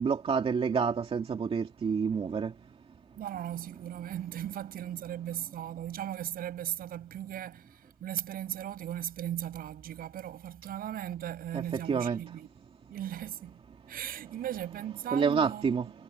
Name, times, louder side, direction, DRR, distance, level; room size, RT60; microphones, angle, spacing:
voice 1, 0.0-2.5 11.5-12.2 15.1-15.9, right 6 dB, 35° right, 2.3 m, -28 dB
voice 2, 3.2-12.5 12.9-13.6 13.9-15.9, right 11 dB, 60° right, 5.8 m, -37 dB
cardioid pair, 110°, 17 cm